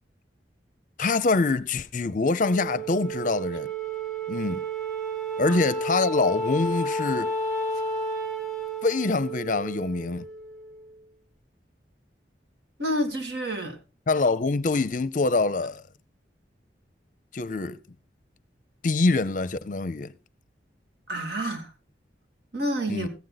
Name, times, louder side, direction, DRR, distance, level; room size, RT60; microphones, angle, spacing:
voice 1, 1.0-3.7 4.3-4.6 5.4-7.3 8.8-10.3 14.1-15.8 17.3-17.8 18.8-20.1 22.9-23.1, left 3 dB, 45° left, 0.6 m, -25 dB
Wind instrument woodwind instrument, 2.4-11.0, right 2 dB, ahead, 5.3 m, -31 dB
voice 2, 12.8-13.8 21.1-21.7 22.5-23.1, right 1 dB, 65° right, 2.4 m, -29 dB
14.5 x 9.1 x 4.0 m
head